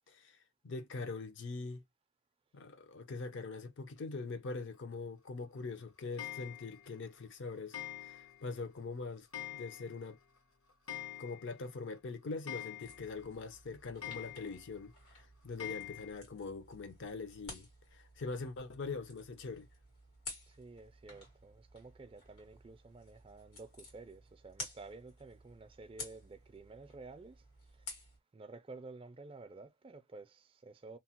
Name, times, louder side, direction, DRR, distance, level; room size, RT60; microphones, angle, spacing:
voice 1, 0.1-0.4 0.6-1.8 2.5-9.3 9.5-10.2 11.2-19.7, left 4 dB, 55° left, 0.5 m, -43 dB
Clock, 6.2-6.9 7.7-8.5 8.8-8.9 9.3-10.1 10.4-10.5 10.7-11.7 12.0-12.1 12.5-13.3 14.0-14.7 15.6-16.1, left 11 dB, 75° left, 0.9 m, -45 dB
sound 1, 12.8-28.2, left 2 dB, 90° left, 1.8 m, -53 dB
voice 2, 20.4-27.9 28.3-31.0, right 3 dB, 25° right, 0.3 m, -52 dB
2.9 x 2.0 x 2.8 m
head